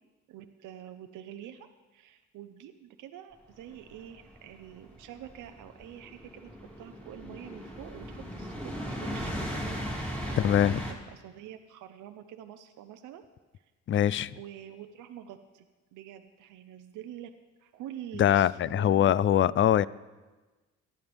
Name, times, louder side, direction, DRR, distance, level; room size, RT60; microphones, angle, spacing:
voice 1, 0.3-13.2 13.5-13.7 14.3-15.7 15.9-17.3 17.6-19.8, right 10 dB, 85° right, 7 dB, 0.7 m, -46 dB
sound 1, 3.9-10.9, equal, 5° left, 2.7 m, -37 dB
voice 2, 10.4-10.8 13.9-14.3 18.2-19.9, left 10 dB, 40° left, 20 dB, 0.4 m, -23 dB
18.5 x 11.5 x 3.5 m, 1.2 s
cardioid pair, 90°, 30 cm